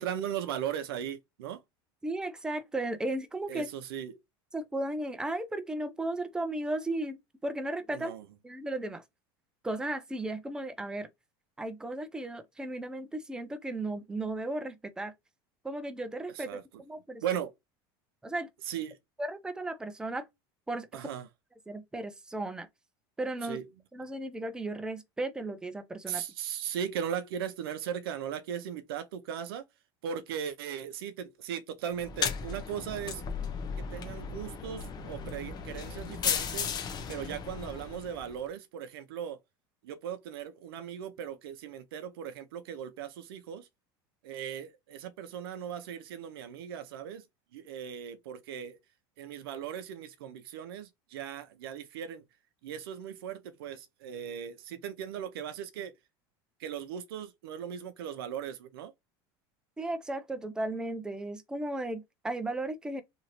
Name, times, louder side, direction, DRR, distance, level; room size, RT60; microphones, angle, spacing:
voice 1, 0.0-1.6 3.5-4.2 7.9-8.2 16.3-16.6 17.2-17.5 18.7-19.0 20.9-21.3 23.4-23.7 26.1-29.6 30.0-33.2 33.8-36.7 37.1-39.4 39.8-43.7 44.2-47.2 47.5-48.8 49.2-52.2 52.6-55.9 56.6-58.9, right 9 dB, 90° right, 0.5 m, -38 dB
voice 2, 2.0-3.7 4.5-8.1 8.4-9.0 9.6-11.1 11.6-15.1 15.6-17.2 18.2-18.5 19.2-20.3 20.7-20.9 21.7-22.7 23.2-23.6 23.9-26.2 59.8-63.0, right 2 dB, 5° right, 0.4 m, -35 dB
sound 1, 32.0-38.4, left 6 dB, 35° left, 0.7 m, -35 dB
2.8 x 2.6 x 2.9 m
supercardioid pair, 115°, 12 cm